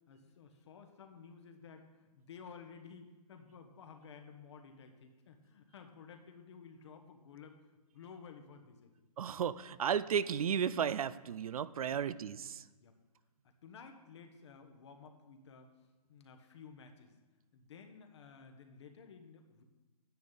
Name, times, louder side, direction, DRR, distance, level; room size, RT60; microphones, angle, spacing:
voice 1, 0.1-8.9 11.9-12.0 12.8-12.9 13.6-15.7 16.1-17.1 17.5-19.6, left 6 dB, 45° left, 6 dB, 1.2 m, -54 dB
voice 2, 9.2-12.6, right 8 dB, 65° right, 16 dB, 0.5 m, -34 dB
10.5 x 9.6 x 4.0 m, 1.2 s
hypercardioid pair, 165°, 20 cm